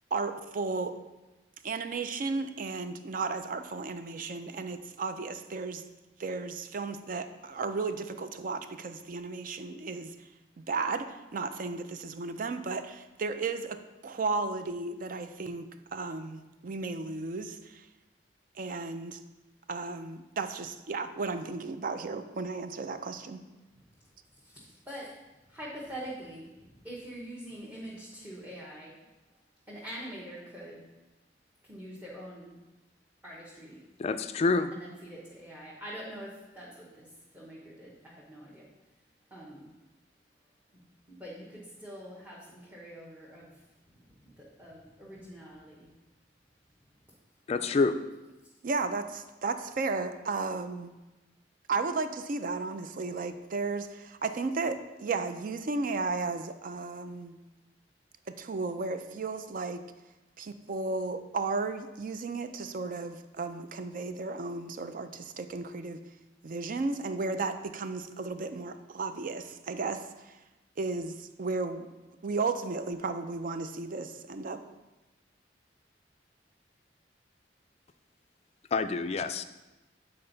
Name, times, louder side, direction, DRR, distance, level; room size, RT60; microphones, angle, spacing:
voice 1, 0.1-1.0 1.6-5.8 6.2-10.3 10.6-17.9 18.6-19.2 19.7-23.4 48.6-50.9 51.7-57.4 58.3-59.8 60.4-66.0 66.4-70.4 70.8-71.9 72.2-74.6, right 3 dB, 50° right, 9 dB, 0.4 m, -34 dB
voice 2, 24.4-25.1 25.5-28.9 29.7-30.9 31.6-32.6 33.2-33.8 34.7-38.7 39.3-39.7 40.7-40.8 41.1-43.7 43.9-45.9 47.5-47.6, equal, 10° right, -6 dB, 0.9 m, -45 dB
voice 3, 34.0-34.7 47.5-48.0 78.7-79.4, left 4 dB, 35° left, 10 dB, 0.3 m, -27 dB
7.6 x 4.3 x 3.9 m, 1.1 s
head